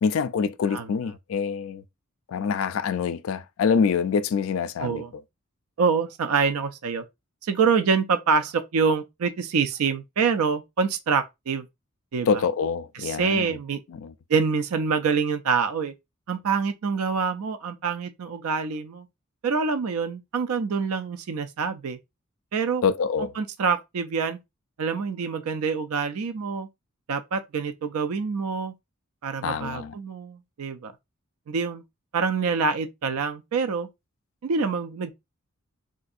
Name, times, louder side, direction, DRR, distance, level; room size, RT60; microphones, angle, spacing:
voice 1, 0.0-1.8 2.3-5.0 12.3-13.5 13.9-14.1 22.8-23.3 29.4-29.9, left 6 dB, 65° left, 0.3 m, -25 dB
voice 2, 4.8-5.1 5.8-7.0 7.4-11.7 12.1-12.4 12.9-13.8 14.3-15.9 16.3-19.1 19.4-22.0 22.5-22.8 23.4-24.4 24.8-26.7 27.1-28.7 29.2-30.9 31.5-31.8 32.1-33.9 34.4-35.1, right 5 dB, 85° right, 0.4 m, -26 dB
3.7 x 2.6 x 2.4 m
head